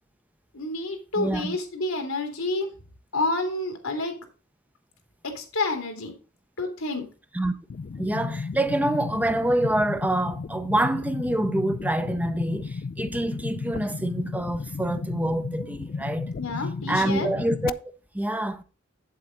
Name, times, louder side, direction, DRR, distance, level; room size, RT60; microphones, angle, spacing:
voice 1, 0.5-2.7 3.1-4.1 5.2-6.1 6.6-7.1 16.4-17.3, left 2 dB, 85° left, 2.6 m, -29 dB
voice 2, 1.2-1.6 7.3-7.5 8.0-16.3 16.8-17.7 18.1-18.6, right 1 dB, 10° right, 0.6 m, -26 dB
sound 1, 7.7-17.7, left 4 dB, 45° left, 0.4 m, -34 dB
8.4 x 7.6 x 3.8 m
head